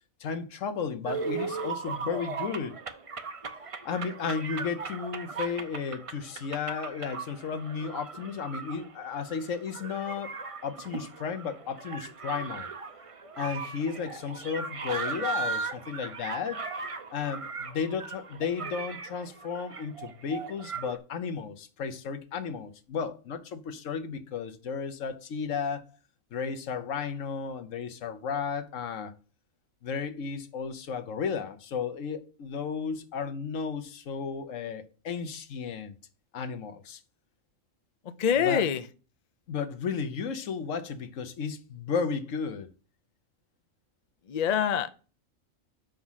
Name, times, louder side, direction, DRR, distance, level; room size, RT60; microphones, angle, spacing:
voice 1, 0.2-2.8 3.8-10.3 10.6-12.7 13.4-16.6 17.1-25.8 26.3-29.1 29.8-35.9 36.3-37.0 38.4-38.7 39.5-42.7, left 6 dB, 75° left, 1.2 m, -34 dB
sound 1, 1.1-21.0, right 5 dB, 35° right, 0.6 m, -38 dB
voice 2, 38.0-38.9 44.3-44.9, left 8 dB, 50° left, 0.4 m, -25 dB
6.0 x 5.1 x 5.6 m
omnidirectional pair, 1.4 m